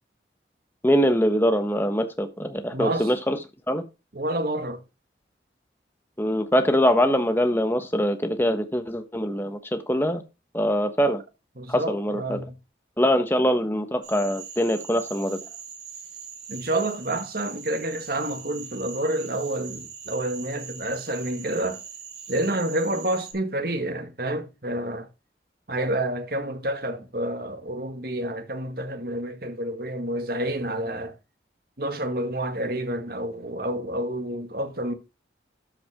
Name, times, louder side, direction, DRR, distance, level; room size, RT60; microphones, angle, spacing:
voice 1, 0.8-3.4 3.7-3.8 6.2-10.2 10.5-11.2 11.7-12.4 13.0-15.4, equal, 10° left, 1.2 m, -23 dB
voice 2, 2.7-3.1 4.1-4.8 11.6-12.5 16.5-21.8 22.3-25.1 25.7-31.2 31.8-34.9, right 1 dB, 55° right, 1.8 m, -29 dB
Cricket / Frog, 14.0-23.3, right 7 dB, 85° right, 4.4 m, -41 dB
13.0 x 6.0 x 3.6 m
head